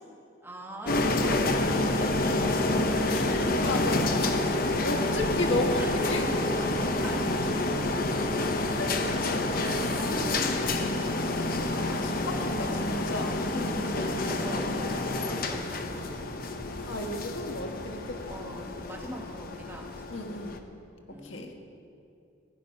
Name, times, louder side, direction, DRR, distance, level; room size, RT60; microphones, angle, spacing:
voice 1, 0.4-4.5 5.7-8.6 9.5-11.4 11.7-13.1 13.5-16.6 18.3-20.3 21.1-21.5, right 1 dB, 10° right, -1 dB, 1.6 m, -43 dB
sound 1, 0.9-20.6, left 2 dB, 50° left, 0.9 m, -28 dB
voice 2, 3.0-6.3 8.8-8.9 10.4-11.1 11.9-14.2 16.9-18.3 20.1-20.6 21.2-21.5, left 1 dB, 85° left, 3 dB, 1.5 m, -34 dB
17.0 x 11.0 x 5.4 m, 2.6 s
head